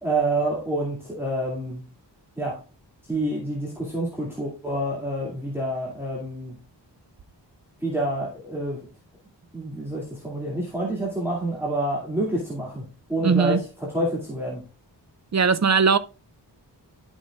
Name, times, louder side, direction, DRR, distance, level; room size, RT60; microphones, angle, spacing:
voice 1, 0.0-1.8 2.4-2.6 3.0-6.6 7.8-8.9 9.5-14.6, right 1 dB, 5° right, 2.4 m, -28 dB
voice 2, 13.2-13.6 15.3-16.0, right 5 dB, 40° right, 0.5 m, -19 dB
12.0 x 6.3 x 2.4 m
wide cardioid pair, 90°, 44 cm